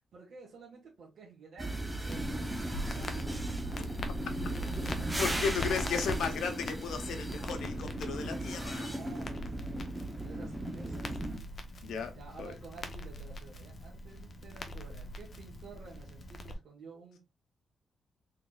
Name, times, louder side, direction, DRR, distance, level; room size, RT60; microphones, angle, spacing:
voice 1, 0.1-3.8 5.4-5.8 6.0-6.3 8.6-11.4 12.1-17.2, right 4 dB, 60° right, 1.5 m, -52 dB
sound 1, 1.6-11.4, right 1 dB, 10° right, 0.6 m, -37 dB
Crackle, 2.1-16.5, left 1 dB, 40° left, 0.7 m, -42 dB
voice 2, 5.2-8.9 11.8-12.5, left 6 dB, 90° left, 0.8 m, -35 dB
4.0 x 3.6 x 2.3 m
wide cardioid pair, 150°, 0 cm